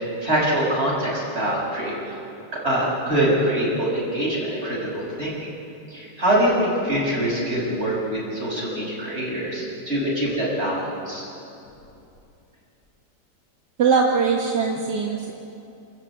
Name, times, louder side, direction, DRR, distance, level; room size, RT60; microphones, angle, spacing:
voice 1, 0.2-2.2 2.5-5.5 5.9-11.3, right 1 dB, 35° right, -5 dB, 6.9 m, -24 dB
voice 2, 13.8-15.3, right 5 dB, 70° right, 0 dB, 2.0 m, -21 dB
28.5 x 14.0 x 8.8 m, 2.7 s
omnidirectional pair, 1.9 m